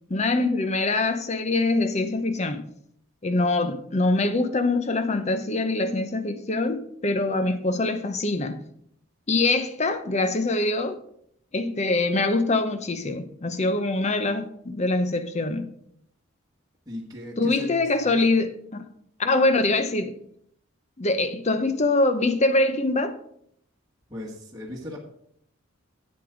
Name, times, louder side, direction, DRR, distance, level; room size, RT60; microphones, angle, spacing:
voice 1, 0.1-2.7 3.2-8.6 9.3-11.0 11.5-15.7 17.4-18.8 19.2-20.2 21.0-23.2, left 2 dB, 35° left, 0.7 m, -24 dB
voice 2, 16.8-18.2 24.1-25.0, left 1 dB, 20° right, 1.5 m, -38 dB
8.1 x 8.1 x 5.0 m
head